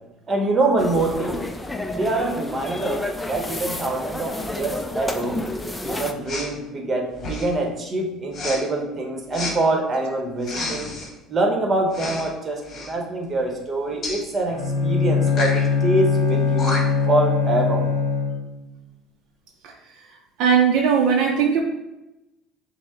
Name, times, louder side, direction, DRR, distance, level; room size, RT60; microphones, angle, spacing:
voice 1, 0.3-1.4 1.9-3.0 3.3-5.4 5.8-10.9 11.3-17.8, right 2 dB, 30° right, 1 dB, 1.0 m, -25 dB
sound 1, 0.8-6.1, left 2 dB, 10° left, 0.4 m, -30 dB
Respiratory sounds, 6.3-6.5 7.2-7.6 8.3-8.6 9.3-9.6 10.4-11.1 11.9-12.3 12.6-12.9 14.0-14.2 15.3-15.6 16.3-16.4 16.6-17.1, left 2 dB, 45° left, 1.2 m, -30 dB
Bowed string instrument, 14.5-18.6, left 5 dB, 85° left, 0.7 m, -21 dB
voice 2, 20.4-21.6, right 7 dB, 70° right, 1 dB, 0.6 m, -18 dB
6.2 x 2.1 x 3.7 m, 0.98 s
supercardioid pair, 95°, 0 cm